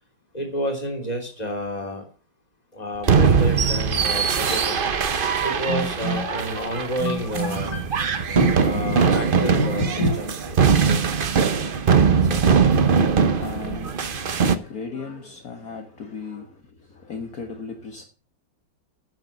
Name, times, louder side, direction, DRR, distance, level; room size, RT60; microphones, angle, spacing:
voice 1, 0.3-2.0 2.7-4.8 5.4-7.9 8.3-10.3, equal, 20° left, 3.2 m, -27 dB
sound 1, 3.0-14.6, right 6 dB, 45° right, 0.7 m, -21 dB
voice 2, 11.7-18.1, left 5 dB, 55° left, 1.8 m, -38 dB
10.5 x 7.5 x 6.9 m
omnidirectional pair, 2.0 m